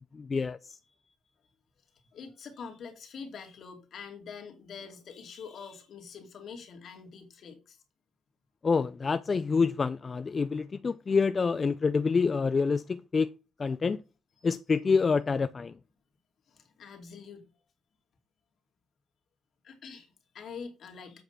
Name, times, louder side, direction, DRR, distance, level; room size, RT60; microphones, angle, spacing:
voice 1, 0.1-0.8 8.6-13.3 13.6-14.0 14.4-15.7, left 5 dB, 35° left, 0.4 m, -27 dB
voice 2, 2.1-7.8 14.4-14.5 16.5-17.4 19.6-21.2, left 6 dB, 65° left, 2.4 m, -45 dB
7.9 x 5.0 x 5.6 m
cardioid pair, 90°, 0 cm